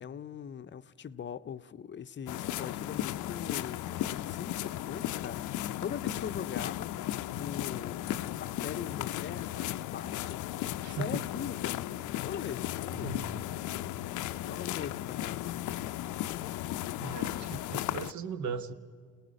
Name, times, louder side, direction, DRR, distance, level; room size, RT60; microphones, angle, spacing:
voice 1, 0.0-6.9 7.3-8.1 8.4-10.4 10.9-11.9 12.2-13.3 14.3-15.5, left 8 dB, 40° left, 0.6 m, -41 dB
sound 1, 2.3-18.1, left 13 dB, 80° left, 0.5 m, -35 dB
voice 2, 10.8-11.2 12.9-13.3 17.0-18.7, right 5 dB, 70° right, 1.1 m, -38 dB
28.5 x 19.0 x 5.1 m
cardioid pair, 90°, 30 cm